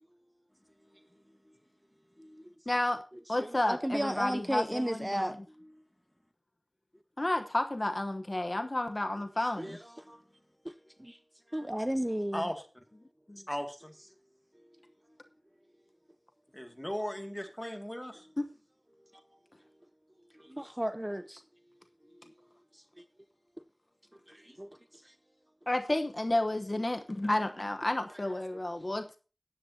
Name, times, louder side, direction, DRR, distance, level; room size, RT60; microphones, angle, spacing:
voice 1, 1.1-1.5 2.2-2.6 5.5-5.9 10.0-10.3 12.3-12.6 13.5-13.9 16.5-18.4 22.0-22.3, equal, 15° left, 2.1 m, -39 dB
voice 2, 2.7-3.0 3.3-5.4 7.2-9.8 13.3-13.4 18.4-18.5 25.7-29.2, left 1 dB, 50° left, 1.0 m, -31 dB
voice 3, 3.4-5.3 9.6-10.2 10.6-11.2 11.5-12.5 20.3-21.4 22.7-23.0 24.1-25.1, equal, 15° right, 0.6 m, -35 dB
15.5 x 10.5 x 2.8 m
wide cardioid pair, 45°, 0 cm